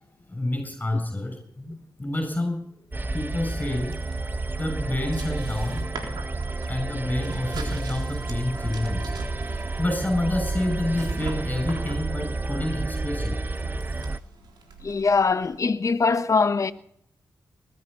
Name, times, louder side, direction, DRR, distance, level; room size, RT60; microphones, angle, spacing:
voice 1, 0.3-2.6 3.1-4.0 4.6-5.8 6.7-9.1 9.5-13.4 14.0-14.1, left 1 dB, 25° left, 7.3 m, -28 dB
sound 1, 2.9-14.2, right 3 dB, 25° right, 0.8 m, -30 dB
sound 2, 2.9-15.6, right 3 dB, 75° right, 3.8 m, -43 dB
voice 2, 14.8-16.7, left 4 dB, 45° left, 1.0 m, -22 dB
20.0 x 12.5 x 5.6 m
supercardioid pair, 40°, 7 cm